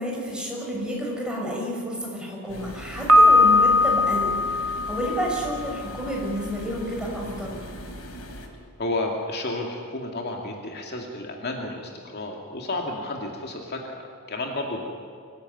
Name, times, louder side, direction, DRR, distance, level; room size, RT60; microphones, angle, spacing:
voice 1, 0.0-4.3 4.6-7.6, equal, 5° right, -2 dB, 6.1 m, -30 dB
sound 1, 2.5-8.5, equal, 90° left, 3.7 m, -39 dB
Piano, 3.1-6.0, left 2 dB, 85° right, 1.7 m, -19 dB
voice 2, 8.8-14.9, left 2 dB, 50° left, 1 dB, 2.4 m, -31 dB
25.0 x 16.0 x 9.4 m, 2.2 s
head